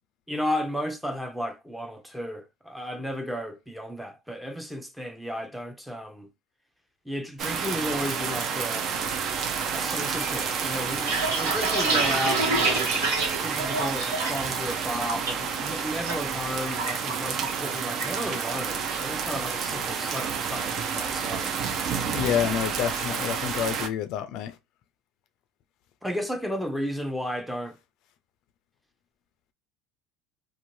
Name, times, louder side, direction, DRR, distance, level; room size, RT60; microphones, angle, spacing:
voice 1, 0.3-6.3 7.0-9.0 9.4-12.9 13.4-21.5 26.0-27.8, equal, 5° right, 0.7 m, -33 dB
sound 1, 7.4-23.9, right 6 dB, 50° right, 0.6 m, -30 dB
sound 2, 11.0-14.5 14.8-15.3 15.7-16.1 16.4-17.7 18.0-18.2 18.6-19.0, right 3 dB, 85° right, 1.3 m, -27 dB
voice 2, 22.1-24.6, left 10 dB, 60° left, 0.4 m, -28 dB
2.6 x 2.5 x 3.0 m
hypercardioid pair, 85°, 0 cm